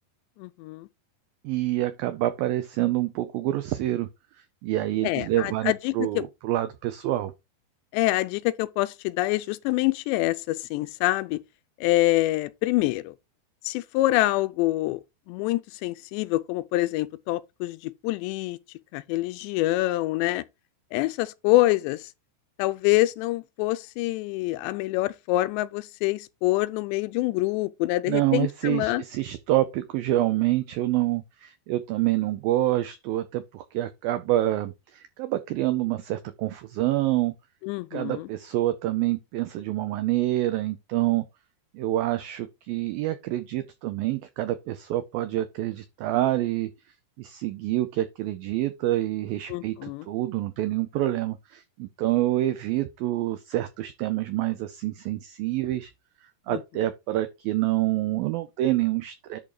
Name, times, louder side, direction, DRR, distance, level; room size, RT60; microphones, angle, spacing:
voice 1, 0.4-0.9 5.0-6.2 7.9-11.4 11.8-13.1 13.6-15.0 15.3-18.6 18.9-20.4 20.9-22.1 22.6-29.0 37.6-38.3 49.5-50.1 56.5-56.6, left 18 dB, 85° left, 2.8 m, -26 dB
voice 2, 1.4-4.1 4.6-7.3 28.1-37.3 37.9-41.2 41.7-46.7 47.2-55.9 56.5-59.4, right 15 dB, 90° right, 2.0 m, -27 dB
11.0 x 3.7 x 4.8 m
omnidirectional pair, 5.1 m